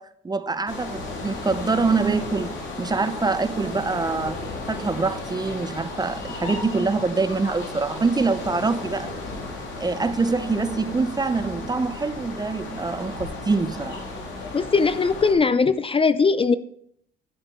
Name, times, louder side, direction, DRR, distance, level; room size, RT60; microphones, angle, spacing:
voice 1, 0.0-2.5 2.8-4.4 4.7-9.1 9.8-13.9, right 4 dB, 20° right, 0.6 m, -25 dB
sound 1, 0.7-15.3, left 2 dB, 70° left, 3.3 m, -34 dB
voice 2, 14.5-16.6, left 4 dB, 25° left, 0.5 m, -20 dB
12.0 x 6.6 x 4.2 m
cardioid pair, 90°, 20 cm